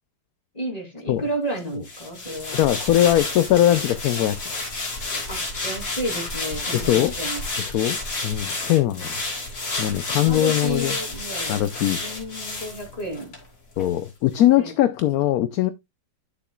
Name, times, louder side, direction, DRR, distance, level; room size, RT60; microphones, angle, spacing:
voice 1, 0.5-2.6 5.3-7.5 9.0-9.1 10.1-11.6 12.0-13.3 14.4-14.7, right 1 dB, 20° left, 2.7 m, -32 dB
sound 1, 1.8-13.4 13.8-13.9, left 2 dB, 50° left, 3.2 m, -30 dB
voice 2, 2.5-4.4 5.0-5.1 6.7-7.1 7.6-8.0 8.2-9.1 9.8-11.0 11.5-12.0 13.8-15.7, left 12 dB, 70° left, 0.9 m, -20 dB
11.5 x 6.9 x 2.3 m
omnidirectional pair, 1.9 m